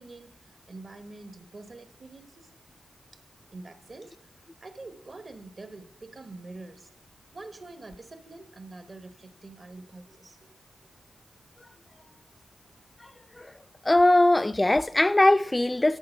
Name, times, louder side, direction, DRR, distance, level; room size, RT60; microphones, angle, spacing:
voice 1, 0.0-2.5 3.1-3.2 3.5-4.1 4.6-6.9 7.3-10.6, right 2 dB, 45° right, 1.0 m, -45 dB
voice 2, 13.8-16.0, left 1 dB, 20° left, 0.3 m, -21 dB
9.4 x 7.8 x 5.4 m
wide cardioid pair, 90°, 0 cm